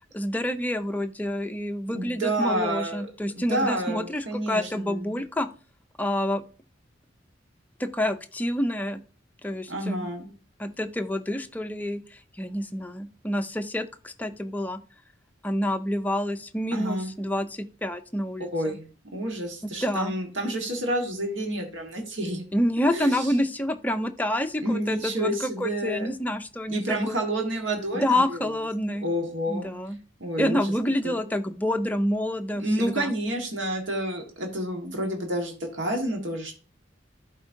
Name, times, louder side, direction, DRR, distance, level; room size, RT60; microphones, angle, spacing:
voice 1, 0.1-5.5 6.0-6.4 7.8-9.0 9.4-10.1 10.6-14.8 15.4-18.8 19.8-20.1 22.5-27.2 27.9-29.1 29.5-30.0 30.4-33.1, left 1 dB, 10° left, 7 dB, 0.5 m, -28 dB
voice 2, 1.9-3.1 3.4-5.2 9.7-10.3 16.7-17.1 18.5-22.5 22.9-23.4 24.6-26.1 26.7-28.5 29.0-29.7 30.2-30.7 31.0-31.2 32.6-36.6, right 1 dB, 80° right, 2 dB, 1.5 m, -29 dB
12.0 x 4.4 x 2.6 m, 0.37 s
head